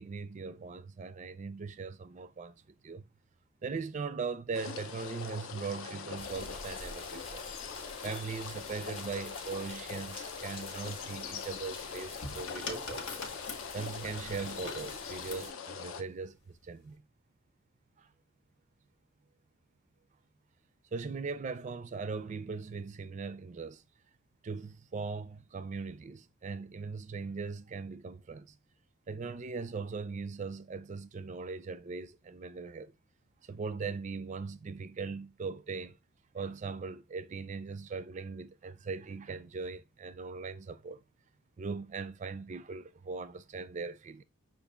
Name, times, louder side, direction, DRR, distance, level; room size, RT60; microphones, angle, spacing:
voice 1, 0.0-3.1 3.6-7.4 8.0-13.2 13.7-17.0 18.0-18.1 20.9-23.8 24.4-28.6 29.1-32.9 33.4-36.0 36.3-41.0 41.6-44.2, right 4 dB, 35° right, 0.3 m, -40 dB
sound 1, 4.5-16.0, left 6 dB, 65° left, 0.5 m, -42 dB
sound 2, 6.2-15.5, left 3 dB, 25° left, 0.7 m, -48 dB
sound 3, 11.8-15.5 16.5-16.9, left 3 dB, 85° left, 1.2 m, -44 dB
5.8 x 2.4 x 3.5 m
head